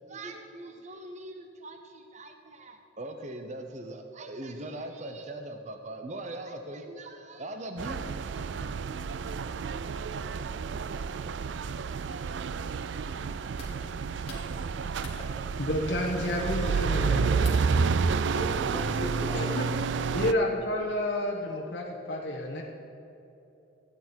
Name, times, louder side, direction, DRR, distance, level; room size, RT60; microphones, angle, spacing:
voice 1, 0.1-8.7, right 1 dB, 35° right, 6 dB, 0.7 m, -41 dB
sound 1, 7.8-20.3, right 5 dB, 65° right, 0.4 m, -30 dB
sound 2, 13.0-17.8, left 2 dB, 30° left, 2.7 m, -49 dB
voice 2, 15.6-17.9 19.3-19.6 20.1-22.6, left 1 dB, 60° left, -2 dB, 1.4 m, -30 dB
voice 3, 18.3-19.5, equal, 10° left, -6 dB, 2.6 m, -38 dB
15.5 x 9.8 x 4.5 m, 2.9 s
head